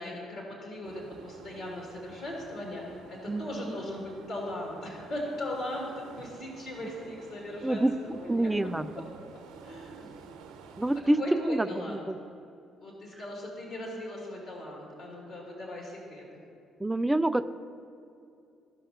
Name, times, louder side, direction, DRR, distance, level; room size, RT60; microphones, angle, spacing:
voice 1, 0.0-8.5 9.3-10.2 11.2-12.0 12.8-16.4, left 1 dB, 60° left, -2 dB, 1.7 m, -39 dB
sound 1, 0.8-11.1, right 6 dB, 70° right, 0.7 m, -50 dB
voice 2, 3.3-3.8 7.6-7.9 8.3-9.1 10.8-11.2 11.5-12.2 16.8-17.4, right 1 dB, 10° right, 12 dB, 0.4 m, -27 dB
14.5 x 5.5 x 2.6 m, 2.5 s
figure-of-eight pair, 45°, 0 cm